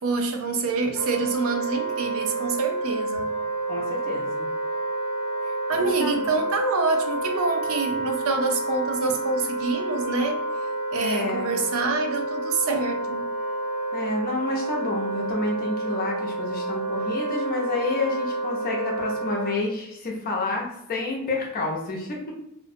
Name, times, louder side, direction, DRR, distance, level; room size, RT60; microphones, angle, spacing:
voice 1, 0.0-3.3 5.7-10.4 10.9-13.3, right 4 dB, 65° right, 4 dB, 0.4 m, -26 dB
Wind instrument woodwind instrument, 0.9-19.6, right 2 dB, 45° right, 0.8 m, -29 dB
voice 2, 3.7-4.5 5.7-6.3 11.0-11.5 13.9-22.3, left 2 dB, 40° left, -1 dB, 0.5 m, -29 dB
2.4 x 2.1 x 2.6 m, 0.81 s
head